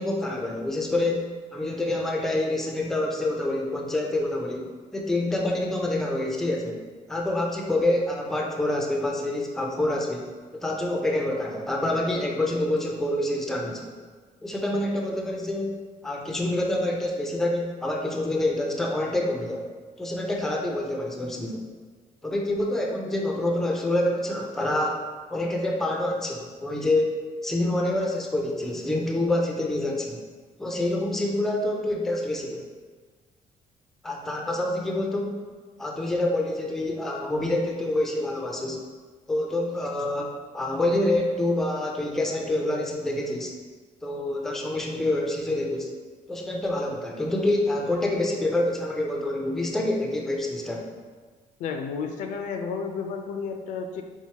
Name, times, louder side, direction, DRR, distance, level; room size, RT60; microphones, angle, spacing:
voice 1, 0.0-6.8 7.1-13.9 14.4-19.7 20.0-21.6 22.2-25.0 25.3-30.2 30.6-32.6 34.0-35.4 35.8-38.8 39.3-43.5 44.0-45.9 46.3-50.9, left 1 dB, 5° left, 0 dB, 0.4 m, -27 dB
voice 2, 51.6-54.0, left 5 dB, 70° left, 5 dB, 0.4 m, -32 dB
4.6 x 3.8 x 2.8 m, 1.4 s
cardioid pair, 175°, 14 cm